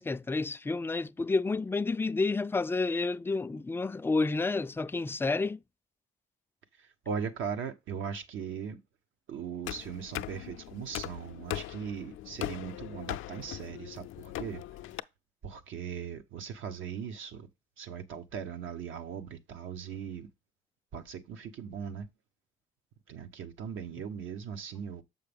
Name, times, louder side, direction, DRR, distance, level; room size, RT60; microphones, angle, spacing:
voice 1, 0.0-5.6, left 3 dB, 10° left, 0.3 m, -30 dB
voice 2, 6.8-8.8 9.3-14.6 15.4-17.5 17.8-20.3 20.9-22.1 23.1-25.0, right 7 dB, 80° right, 1.1 m, -39 dB
sound 1, 9.6-15.0, left 14 dB, 85° left, 0.4 m, -40 dB
7.0 x 5.6 x 3.5 m
cardioid pair, 90°, 20 cm